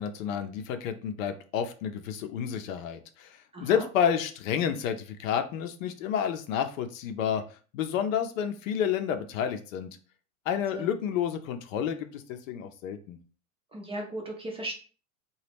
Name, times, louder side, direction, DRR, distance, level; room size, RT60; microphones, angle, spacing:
voice 1, 0.0-7.4 7.7-9.9 10.5-13.2, left 8 dB, 65° left, 7 dB, 0.7 m, -30 dB
voice 2, 3.5-3.9 10.7-10.9 13.7-14.8, right 1 dB, 15° right, 0 dB, 0.6 m, -36 dB
2.9 x 2.3 x 3.4 m, 0.38 s
hypercardioid pair, 110°, 43 cm